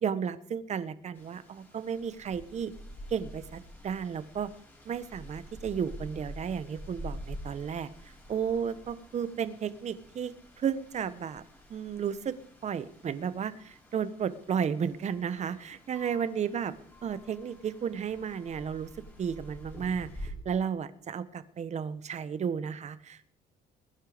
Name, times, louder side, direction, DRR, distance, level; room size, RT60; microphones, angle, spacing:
voice 1, 0.0-2.7 3.1-4.5 4.8-7.9 8.3-11.4 11.7-12.3 12.6-16.7 17.0-18.9 19.2-23.3, right 7 dB, 40° right, 14 dB, 1.1 m, -33 dB
sound 1, 1.1-20.3, equal, 10° left, 6.4 m, -48 dB
21.5 x 10.0 x 5.1 m, 0.63 s
cardioid pair, 110°, 17 cm